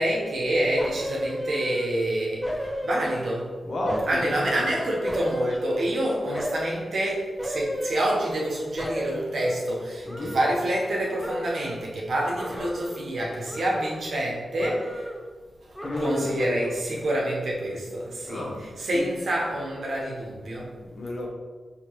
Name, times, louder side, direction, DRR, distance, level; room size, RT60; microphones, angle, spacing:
voice 1, 0.0-3.5 4.1-15.1 15.6-20.7, right 1 dB, 75° right, -3 dB, 0.9 m, -27 dB
sound 1, 0.8-2.0 2.4-3.5 3.9-6.0 6.3-6.9 7.4-8.5 8.8-10.9 11.2-11.9 12.3-13.2 13.5-14.3 14.6-15.3 15.7-16.6 16.9-17.0, equal, 5° left, 0.4 m, -34 dB
voice 2, 3.7-4.7 10.1-10.4 15.8-16.7 18.3-18.6 18.9-19.0 20.8-21.3, left 1 dB, 60° left, 0 dB, 0.8 m, -31 dB
5.1 x 2.7 x 3.0 m, 1.4 s
wide cardioid pair, 85°, 0 cm